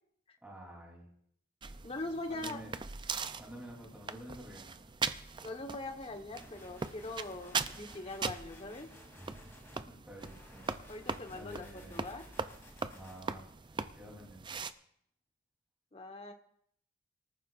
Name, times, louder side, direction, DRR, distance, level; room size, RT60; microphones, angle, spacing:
voice 1, 0.4-1.1 2.3-2.8 3.4-4.8 9.1-11.0 11.3-12.1 12.9-14.6, right 1 dB, 5° right, -2 dB, 3.4 m, -50 dB
sound 1, 1.6-14.7, right 5 dB, 25° right, 0.4 m, -41 dB
voice 2, 1.8-2.6 5.4-8.9 10.9-12.2 15.9-16.3, left 2 dB, 30° left, 5 dB, 1.3 m, -42 dB
sound 2, 6.3-9.8 10.2-13.2, left 1 dB, 10° left, 3.0 m, -56 dB
25.0 x 14.0 x 2.5 m, 0.68 s
head